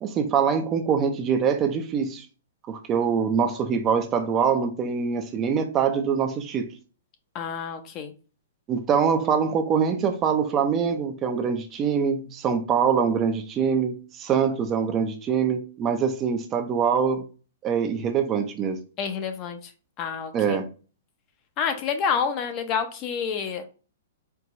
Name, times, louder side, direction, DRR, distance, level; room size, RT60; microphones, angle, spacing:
voice 1, 0.0-2.3 2.7-6.7 8.7-17.2 17.6-18.8 20.3-20.6, right 6 dB, 20° right, 0.5 m, -24 dB
voice 2, 7.3-8.1 19.0-19.7 20.0-20.6 21.6-23.6, left 6 dB, 30° left, 0.6 m, -28 dB
4.5 x 2.2 x 3.8 m
hypercardioid pair, 150°, 0 cm